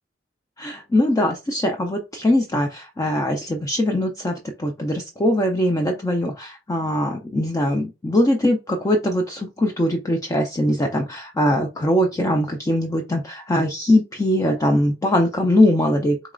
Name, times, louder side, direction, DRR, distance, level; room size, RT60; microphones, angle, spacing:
voice 1, 0.6-16.3, left 1 dB, 20° left, 4 dB, 0.3 m, -21 dB
3.9 x 3.0 x 2.4 m, 0.28 s
head